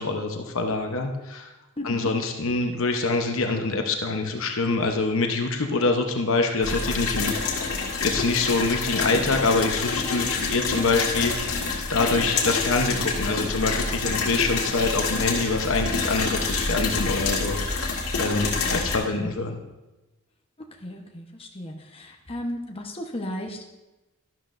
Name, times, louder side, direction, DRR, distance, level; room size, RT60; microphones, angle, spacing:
voice 1, 0.0-1.5 1.8-7.3 8.0-11.6 11.9-17.9 18.2-19.6, left 3 dB, 65° left, 3 dB, 0.9 m, -25 dB
voice 2, 1.8-2.1 18.4-18.9 19.1-19.4 20.8-23.6, left 1 dB, 25° left, 1 dB, 1.1 m, -35 dB
sound 1, 6.6-19.0, left 4 dB, 80° left, 1.9 m, -27 dB
12.5 x 11.5 x 2.6 m, 1.0 s
head